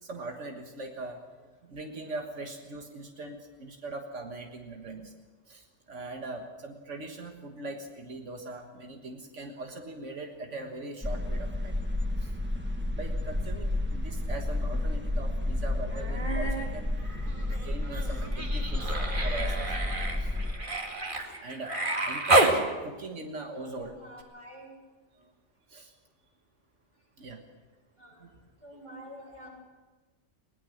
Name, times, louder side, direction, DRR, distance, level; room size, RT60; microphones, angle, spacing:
voice 1, 0.0-5.1 5.5-11.8 12.2-12.4 12.9-16.9 17.6-18.9 19.2-20.7 21.4-21.8 22.0-23.9 25.2-25.3 25.7-25.9 27.2-27.4 28.2-28.3, right 2 dB, 85° right, 3 dB, 1.9 m, -41 dB
sound 1, 11.0-20.5, left 1 dB, 10° right, 1.5 m, -31 dB
Human voice, 15.9-16.7 17.0-22.6 24.2-24.3, right 2 dB, 45° right, 2.2 m, -29 dB
voice 2, 23.5-24.7 28.0-28.2 28.6-29.5, left 1 dB, 25° right, -2 dB, 6.9 m, -47 dB
21.5 x 19.5 x 6.5 m, 1.3 s
omnidirectional pair, 1.2 m